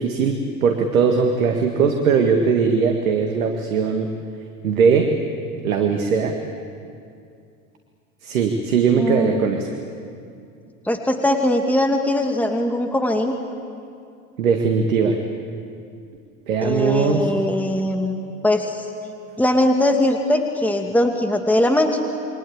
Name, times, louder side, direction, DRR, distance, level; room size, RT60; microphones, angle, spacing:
voice 1, 0.0-4.1 4.6-5.1 5.6-6.4 8.2-9.7 14.4-15.2 16.5-17.3, right 5 dB, 80° right, 4 dB, 2.0 m, -19 dB
voice 2, 9.0-9.5 10.8-13.3 16.6-18.9 19.4-22.0, left 1 dB, 5° left, 4 dB, 2.2 m, -20 dB
29.5 x 23.5 x 8.6 m, 2.4 s
hypercardioid pair, 80°, 41 cm